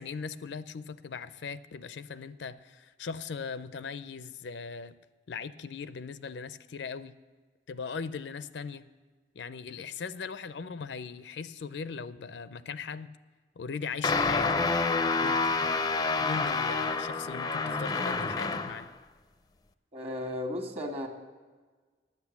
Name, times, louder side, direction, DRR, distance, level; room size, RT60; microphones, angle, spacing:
voice 1, 0.0-4.9 5.3-7.2 7.7-8.9 9.3-13.2 13.6-14.6 15.2-15.7 16.2-18.9, left 5 dB, 80° left, 14 dB, 0.5 m, -39 dB
sound 1, 14.0-18.9, left 4 dB, 20° left, 0.4 m, -28 dB
voice 2, 19.9-21.1, left 1 dB, 35° right, 3 dB, 1.4 m, -34 dB
10.5 x 8.2 x 7.0 m, 1.4 s
head